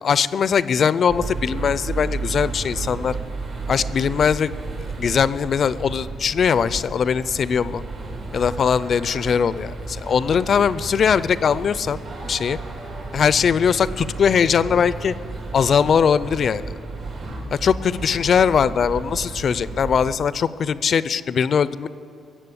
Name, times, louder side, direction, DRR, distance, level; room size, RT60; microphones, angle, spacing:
voice 1, 0.0-3.2 3.7-4.5 5.0-7.8 8.3-12.0 12.3-12.6 13.1-15.1 15.5-16.6 17.5-21.9, left 7 dB, 55° left, 16 dB, 0.4 m, -20 dB
sound 1, 1.1-20.1, right 3 dB, 60° right, 3.1 m, -33 dB
16.0 x 7.4 x 8.4 m, 2.5 s
cardioid pair, 90°, 0 cm